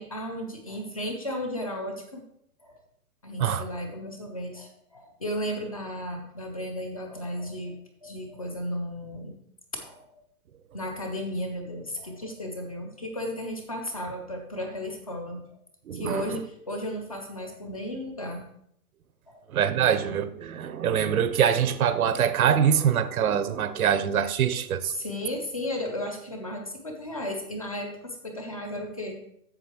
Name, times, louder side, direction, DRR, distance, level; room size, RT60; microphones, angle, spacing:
voice 1, 0.0-2.2 2.6-2.8 3.2-9.4 9.7-10.2 10.7-15.4 15.9-18.4 19.3-19.4 24.9-29.1, left 1 dB, 25° left, 0.5 m, -34 dB
voice 2, 15.9-16.4 19.5-24.9, right 8 dB, 70° right, 0.8 m, -24 dB
7.8 x 6.6 x 4.3 m
hypercardioid pair, 175°, 45 cm